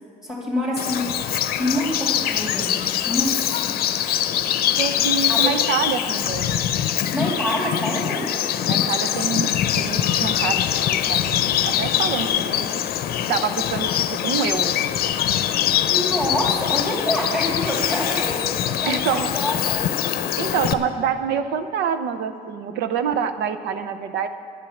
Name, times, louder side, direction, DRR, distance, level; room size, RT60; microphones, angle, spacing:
voice 1, 0.2-1.2 1.6-3.8 5.1-5.6 7.1-8.4 15.6-19.9 20.6-20.7, left 1 dB, ahead, -5 dB, 2.5 m, -27 dB
Bird vocalization bird call bird song, 0.8-20.7, left 10 dB, 65° left, 0.6 m, -23 dB
voice 2, 4.8-6.6 8.7-12.7 13.3-14.8 18.9-19.3 20.4-24.3, right 7 dB, 80° right, 9 dB, 0.8 m, -26 dB
10.5 x 9.9 x 7.1 m, 2.3 s
cardioid pair, 110°, 17 cm